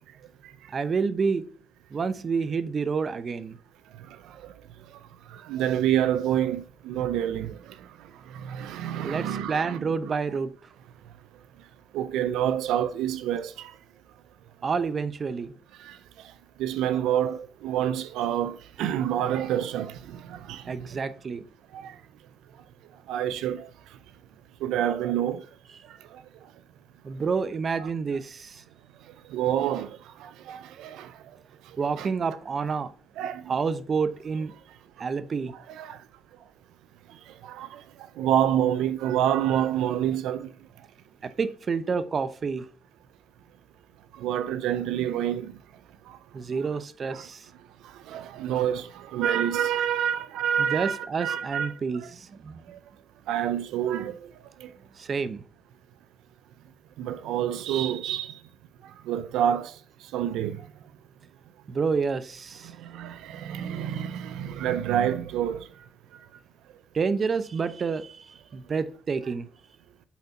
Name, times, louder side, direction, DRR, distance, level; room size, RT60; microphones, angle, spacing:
voice 1, 0.7-1.4 1.9-3.6 9.0-10.5 14.6-15.5 20.6-21.4 27.0-28.6 31.8-32.9 33.5-34.5 35.0-35.5 41.2-42.7 46.3-47.5 50.6-52.6 55.0-55.4 61.7-62.7 66.9-69.5, right 5 dB, 45° right, 0.8 m, -29 dB
voice 2, 5.5-7.6 8.5-10.0 11.9-13.7 15.9-16.0 16.6-19.9 20.3-20.6 21.7-21.9 23.1-23.7 24.6-25.4 29.3-29.9 30.2-31.1 32.0-32.1 33.2-33.4 35.7-36.0 37.4-37.8 38.2-40.5 44.2-45.5 47.1-47.2 48.1-51.7 53.3-54.2 57.0-58.3 59.1-59.7 60.1-60.5 62.9-65.6, right 10 dB, 90° right, 0.5 m, -27 dB
8.3 x 4.2 x 4.0 m
cardioid pair, 90°, 0 cm